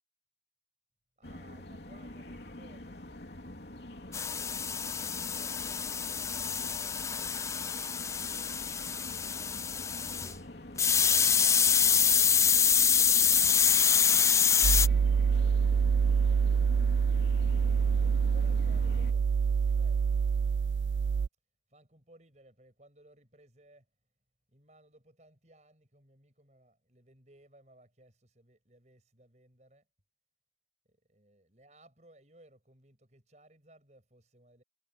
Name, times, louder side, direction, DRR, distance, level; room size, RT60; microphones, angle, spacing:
sound 1, 1.2-19.1, left 1 dB, 70° left, 3.0 m, -46 dB
voice 1, 1.2-3.3 4.0-11.3 12.0-17.5 17.9-20.1 21.7-23.9 24.5-29.9 30.9-34.6, right 1 dB, 40° right, 6.7 m, -61 dB
sound 2, 4.1-10.3 10.8-14.9, left 7 dB, 15° left, 0.4 m, -26 dB
sound 3, 14.6-21.3, right 6 dB, 85° right, 0.4 m, -26 dB
head